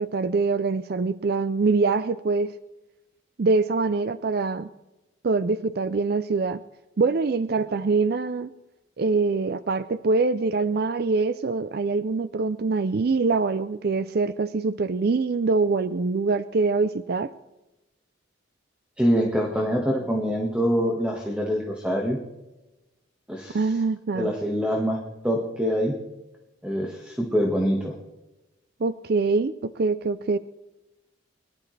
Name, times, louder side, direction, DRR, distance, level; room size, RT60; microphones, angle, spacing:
voice 1, 0.0-2.5 3.4-4.7 5.2-6.6 7.0-8.5 9.0-17.3 23.5-24.3 28.8-30.4, right 4 dB, 50° right, 13 dB, 0.4 m, -24 dB
voice 2, 19.0-22.2 23.3-23.7 24.1-25.0 25.2-26.0 26.6-27.9, equal, 5° right, 0 dB, 1.5 m, -25 dB
22.0 x 12.0 x 3.3 m, 1.0 s
head